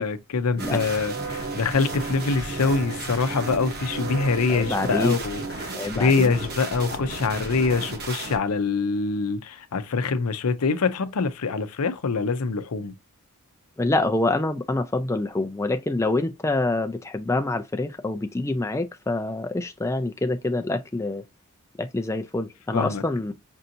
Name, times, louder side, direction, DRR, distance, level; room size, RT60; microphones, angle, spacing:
voice 1, 0.0-13.0 22.7-23.0, left 4 dB, 85° left, 0.6 m, -25 dB
sound 1, 0.6-8.4, right 3 dB, 45° right, 1.0 m, -33 dB
voice 2, 4.5-5.2 5.7-6.3 13.8-21.2 21.8-23.3, left 2 dB, 15° left, 0.4 m, -26 dB
5.4 x 2.7 x 2.5 m
head